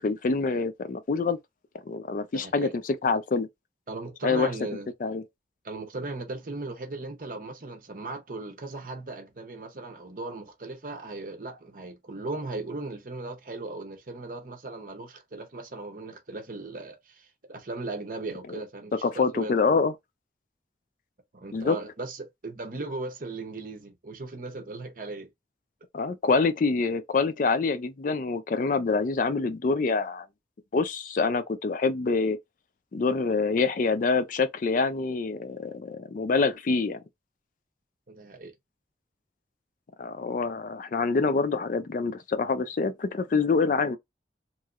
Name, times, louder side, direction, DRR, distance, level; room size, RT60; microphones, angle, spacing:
voice 1, 0.0-1.4 1.9-3.5 4.2-4.5 5.0-5.2 18.5-18.6 19.0-19.9 21.5-21.8 25.9-30.3 30.7-32.4 32.9-37.0 40.0-44.0, left 4 dB, 50° left, 0.4 m, -26 dB
voice 2, 2.3-2.7 3.9-4.9 5.6-19.6 21.3-25.3 38.1-38.5, right 2 dB, 50° right, 0.7 m, -37 dB
3.0 x 2.7 x 2.4 m
head